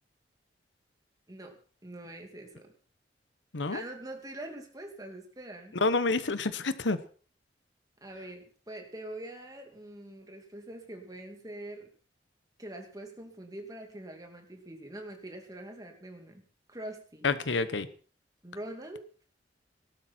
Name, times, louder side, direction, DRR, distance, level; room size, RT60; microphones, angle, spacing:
voice 1, 1.3-2.7 3.7-5.8 8.0-11.9 12.6-17.3 18.4-19.0, right 1 dB, 20° right, 3 dB, 2.6 m, -44 dB
voice 2, 5.7-7.0 17.2-17.9, left 3 dB, 90° left, 14 dB, 1.1 m, -28 dB
18.5 x 12.0 x 4.4 m, 0.41 s
head